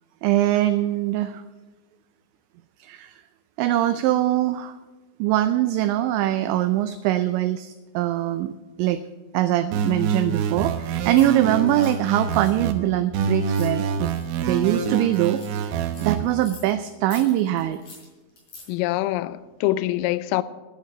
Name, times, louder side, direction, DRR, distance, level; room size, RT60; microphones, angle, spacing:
voice 1, 0.2-1.4 2.8-3.2 3.6-4.7 5.2-8.5 8.8-9.0 9.3-14.1 14.4-17.8, right 13 dB, 90° right, 2.6 m, -23 dB
sound 1, 9.7-12.7 13.1-16.2, right 5 dB, 75° right, 3.4 m, -26 dB
sound 2, 10.8-14.3 14.6-16.8 17.1-18.7, left 3 dB, 40° left, 5.7 m, -47 dB
voice 2, 18.7-20.4, left 16 dB, 85° left, 3.3 m, -24 dB
11.0 x 11.0 x 8.2 m
omnidirectional pair, 5.8 m